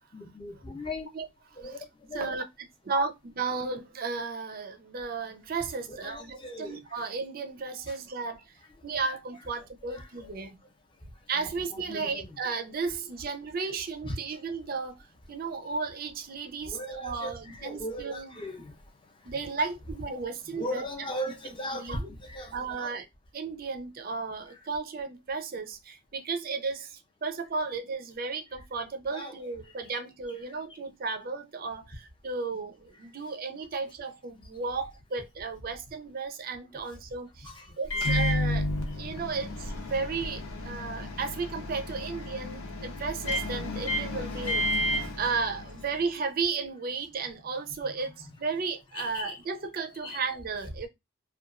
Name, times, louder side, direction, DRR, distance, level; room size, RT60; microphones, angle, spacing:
voice 1, 0.1-1.1 1.6-1.8 2.1-2.3 2.9-3.0 6.0-6.8 7.9-8.0 11.9-12.2 14.0-14.1 16.7-18.7 20.5-22.9 29.1-29.3 37.4-37.7 37.9-38.0 49.0-49.3 50.0-50.2, left 1 dB, 25° left, 0.5 m, -37 dB
voice 2, 2.1-8.4 8.8-10.6 11.3-18.4 19.2-21.1 21.7-22.1 22.5-23.1 23.3-37.5 37.8-38.7 38.9-44.7 45.2-50.9, right 4 dB, 45° right, 0.4 m, -34 dB
Microwave oven, 37.8-46.0, left 1 dB, 85° left, 0.8 m, -31 dB
2.8 x 2.2 x 2.4 m
head